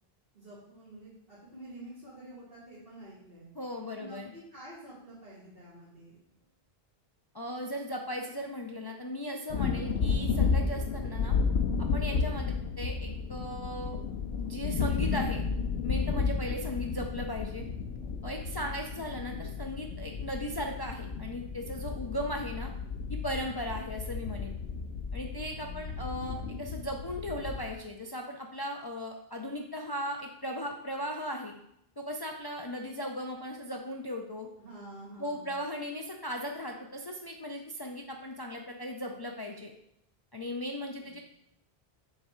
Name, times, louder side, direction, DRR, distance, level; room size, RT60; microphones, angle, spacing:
voice 1, 0.3-3.5 3.9-6.2 25.5-26.4 34.6-35.5 41.0-41.2, right 1 dB, 60° right, -11 dB, 2.3 m, -49 dB
voice 2, 3.6-4.3 7.3-11.4 11.8-14.0 14.4-15.4 15.8-17.7 18.2-22.7 23.1-24.5 25.1-31.5 32.0-34.5 35.2-39.7 40.3-41.2, equal, 35° left, 1 dB, 0.4 m, -37 dB
sound 1, 9.5-27.7, left 5 dB, 85° left, 0.8 m, -32 dB
6.7 x 3.4 x 4.3 m, 0.77 s
omnidirectional pair, 1.0 m